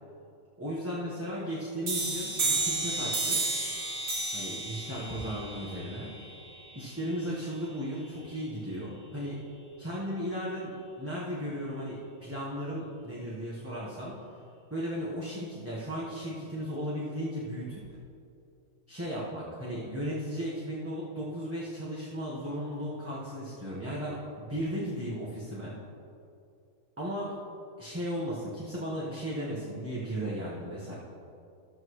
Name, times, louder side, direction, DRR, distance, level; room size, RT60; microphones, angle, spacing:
voice 1, 0.6-3.4 4.3-6.1 6.7-9.4 9.8-14.1 14.7-17.8 18.9-25.7 27.0-27.3 27.8-30.9, equal, 10° right, -7 dB, 1.1 m, -35 dB
sound 1, 1.9-7.3, right 2 dB, 65° right, 2.0 m, -32 dB
13.0 x 7.6 x 3.2 m, 2.5 s
omnidirectional pair, 1.5 m